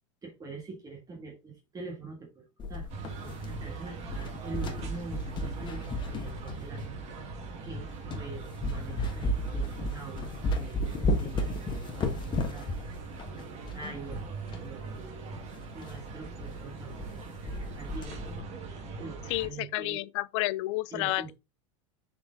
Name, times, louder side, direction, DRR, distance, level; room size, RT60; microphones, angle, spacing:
voice 1, 0.2-2.9 3.5-6.8 7.1-12.7 13.3-14.2 14.6-15.4 15.7-20.0 20.9-21.3, right 4 dB, 20° right, 1.7 m, -45 dB
sound 1, 2.6-3.7 4.0-7.0 7.6-7.7 8.1-8.3 8.6-14.7 15.0-15.1 15.3-15.4 15.8-16.0 16.4-16.5 16.8-17.2 17.5-18.4, left 1 dB, 30° left, 1.4 m, -33 dB
sound 2, 2.9-19.5, right 3 dB, 40° right, 1.8 m, -41 dB
voice 2, 19.3-21.3, left 19 dB, 65° left, 0.4 m, -30 dB
6.8 x 4.4 x 3.8 m
hypercardioid pair, 110°, 17 cm